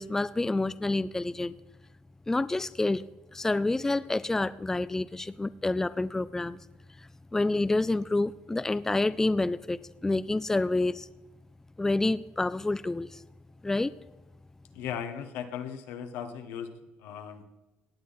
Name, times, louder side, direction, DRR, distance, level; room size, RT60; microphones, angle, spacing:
voice 1, 0.0-1.5 2.3-3.0 3.3-6.6 7.0-11.1 11.8-13.2 13.6-13.9, left 2 dB, 10° left, 15 dB, 0.4 m, -28 dB
voice 2, 14.7-16.7 17.0-17.4, left 8 dB, 80° left, 7 dB, 1.2 m, -37 dB
17.5 x 8.3 x 4.1 m, 1.0 s
supercardioid pair, 85°, 4 cm